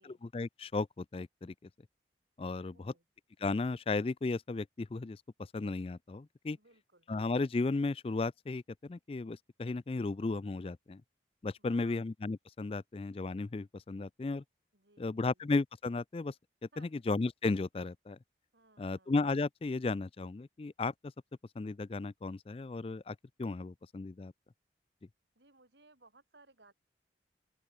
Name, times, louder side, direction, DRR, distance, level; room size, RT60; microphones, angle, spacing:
voice 1, 0.0-1.7 2.4-2.9 3.4-6.6 7.1-11.0 11.4-14.4 15.0-16.3 16.8-18.2 18.8-20.9 21.6-24.3, left 3 dB, 30° left, 0.4 m, -35 dB
voice 2, 2.7-3.0 6.5-7.1 11.6-12.0 14.7-15.4 16.7-17.0 18.5-19.2 25.4-26.7, right 3 dB, 80° right, 5.9 m, -63 dB
open air
head